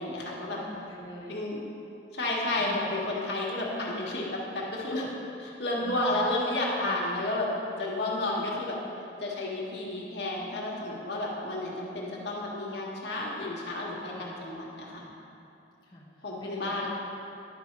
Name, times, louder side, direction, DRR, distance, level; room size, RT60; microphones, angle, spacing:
voice 1, 0.0-0.6 1.3-1.6 2.1-5.1 5.4-7.5 7.8-8.8 9.2-15.1 16.2-16.9, left 2 dB, 65° left, -4 dB, 1.7 m, -31 dB
voice 2, 0.5-1.4 2.6-2.9 5.8-6.2 6.8-7.2 10.9-11.0 14.1-14.3 15.8-16.9, equal, 25° left, -6 dB, 1.0 m, -45 dB
11.0 x 4.4 x 5.9 m, 2.7 s
head